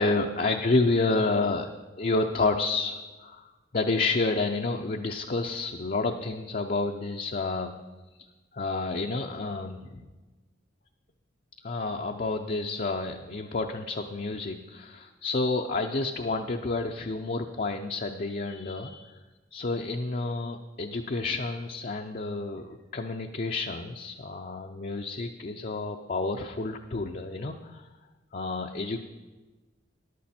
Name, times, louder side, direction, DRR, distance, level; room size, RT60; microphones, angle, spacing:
voice 1, 0.0-1.7 2.0-3.5 3.7-7.8 8.5-10.1 11.6-19.1 19.5-27.9 28.3-29.0, left 3 dB, 45° left, 3 dB, 0.6 m, -29 dB
14.5 x 11.0 x 4.3 m, 1.2 s
head